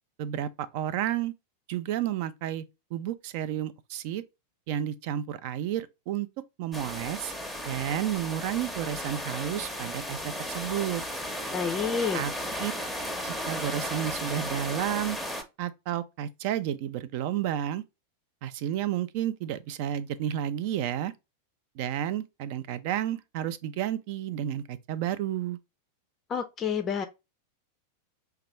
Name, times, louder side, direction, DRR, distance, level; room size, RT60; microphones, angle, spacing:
voice 1, 0.2-1.3 1.7-2.6 2.9-4.2 4.7-6.3 6.6-7.3 7.6-11.0 12.1-12.3 12.6-12.7 13.2-15.2 15.6-17.8 18.4-21.1 21.8-25.6, right 11 dB, 45° right, 0.4 m, -31 dB
sound 1, 6.7-15.4, equal, 5° right, 0.8 m, -35 dB
voice 2, 11.5-12.2 26.3-27.1, left 6 dB, 25° left, 0.4 m, -29 dB
5.6 x 2.3 x 3.2 m
figure-of-eight pair, 90°, 0 cm